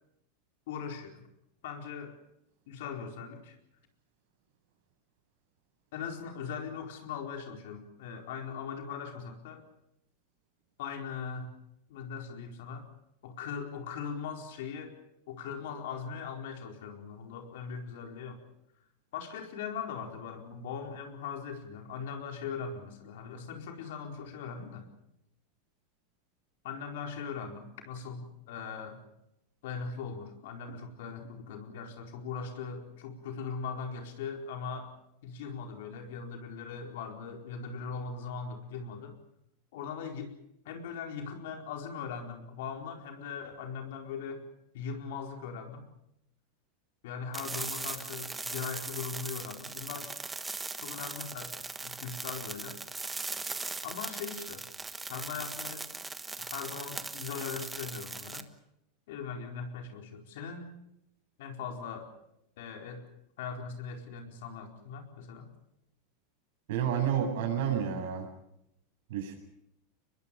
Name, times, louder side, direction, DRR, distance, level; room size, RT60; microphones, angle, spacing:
voice 1, 0.7-1.3 1.6-2.2 2.7-3.6 5.9-9.6 10.8-11.5 11.9-12.9 13.2-15.0 15.3-18.4 19.1-24.9 26.6-29.0 29.6-34.9 35.2-39.2 39.7-40.3 40.6-44.4 44.7-45.8 47.0-50.2 50.8-52.8 53.8-54.7 55.1-55.9 56.4-58.5 59.1-60.7 61.4-62.1 62.6-63.1 63.4-65.5, left 6 dB, 75° left, 4 dB, 4.4 m, -40 dB
sound 1, 47.3-58.4, right 3 dB, 10° right, 1.3 m, -39 dB
voice 2, 66.7-68.3 69.1-69.4, right 8 dB, 75° right, 4 dB, 7.7 m, -30 dB
24.5 x 21.0 x 7.0 m, 0.79 s
supercardioid pair, 120°, 0 cm